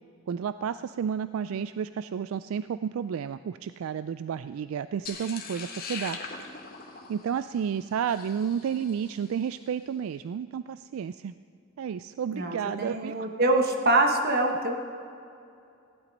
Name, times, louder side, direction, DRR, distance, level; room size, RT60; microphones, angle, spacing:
voice 1, 0.3-6.2 7.1-11.3 11.8-13.2, right 7 dB, 75° right, 13 dB, 0.3 m, -31 dB
sound 1, 5.0-9.3, left 5 dB, 45° left, 1.4 m, -41 dB
voice 2, 12.3-14.8, right 2 dB, 45° right, 4 dB, 1.2 m, -24 dB
15.5 x 11.0 x 5.3 m, 2.6 s
head